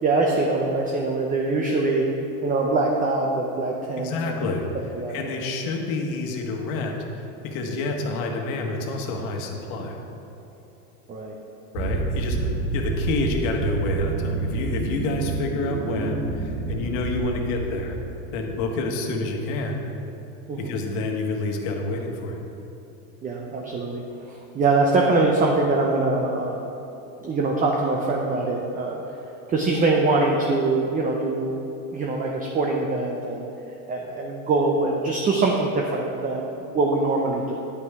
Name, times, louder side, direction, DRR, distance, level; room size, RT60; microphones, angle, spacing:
voice 1, 0.0-2.0 2.4-4.4 4.9-5.3 11.1-11.4 20.5-20.7 23.2-24.0 24.5-26.7 27.2-29.0 29.5-31.5 31.9-33.5 33.9-36.5 36.7-37.5, right 3 dB, 20° right, 0 dB, 0.6 m, -23 dB
voice 2, 4.0-4.6 5.1-10.0 11.7-18.0 18.3-19.8 20.6-22.4, left 2 dB, 60° left, 2 dB, 1.4 m, -28 dB
sound 1, 11.7-18.5, right 3 dB, 60° right, 1.5 m, -28 dB
9.8 x 5.6 x 4.7 m, 3.0 s
supercardioid pair, 120°, 46 cm